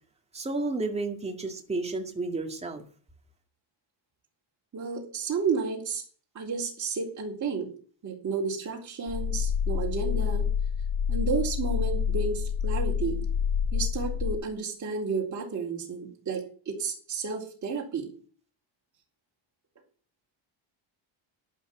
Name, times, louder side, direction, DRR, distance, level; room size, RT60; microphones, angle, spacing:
voice 1, 0.3-2.8, right 3 dB, 15° right, 2.2 m, -31 dB
voice 2, 4.7-6.0 6.3-7.7 8.0-10.5 11.1-13.2 13.7-18.1, right 5 dB, 35° right, 3.8 m, -32 dB
sound 1, 9.1-14.3, left 7 dB, 50° left, 3.2 m, -28 dB
11.5 x 10.5 x 6.1 m
cardioid pair, 150°, 47 cm